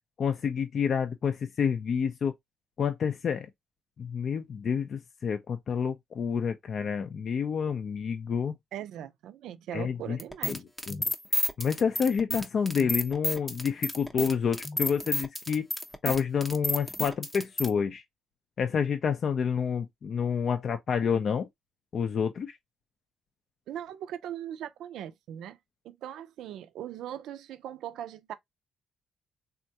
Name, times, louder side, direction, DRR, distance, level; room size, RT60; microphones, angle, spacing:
voice 1, 0.2-2.3 2.8-3.5 4.0-8.6 9.7-10.2 10.4-10.6 10.9-11.1 11.6-15.7 16.0-18.0 18.6-21.5 21.9-22.5, left 6 dB, 55° left, 0.4 m, -28 dB
voice 2, 8.7-10.6 23.7-25.6 25.8-28.3, right 10 dB, 80° right, 0.4 m, -40 dB
sound 1, 10.2-17.7, left 1 dB, 5° left, 0.6 m, -31 dB
3.6 x 2.1 x 2.7 m
cardioid pair, 90°, 0 cm